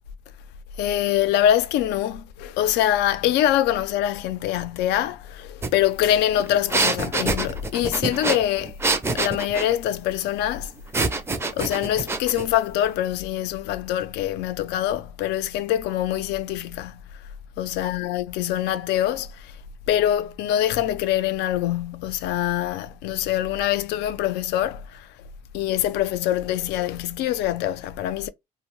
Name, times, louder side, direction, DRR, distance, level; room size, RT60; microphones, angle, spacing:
voice 1, 0.8-8.8 9.1-10.7 11.5-17.0 17.6-19.5 19.9-25.1 25.5-28.3, left 12 dB, 85° left, 0.4 m, -24 dB
sound 1, 5.6-5.7 6.0-9.7 10.9-12.5, right 3 dB, 15° right, 0.4 m, -26 dB
2.6 x 2.1 x 2.9 m
cardioid pair, 110°, 17 cm